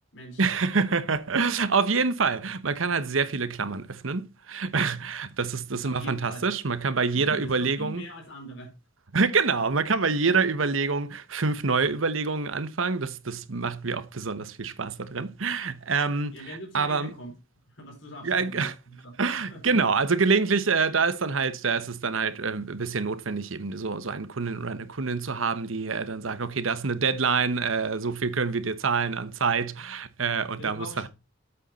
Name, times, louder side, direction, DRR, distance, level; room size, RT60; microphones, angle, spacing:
voice 1, 0.4-8.0 9.1-17.1 18.2-18.7 19.2-31.1, right 4 dB, 85° right, 1.1 m, -26 dB
voice 2, 5.8-6.4 7.1-8.7 16.3-17.3 17.8-19.1 19.5-19.8 30.6-31.1, equal, 65° left, 4.5 m, -42 dB
8.3 x 8.0 x 4.2 m
head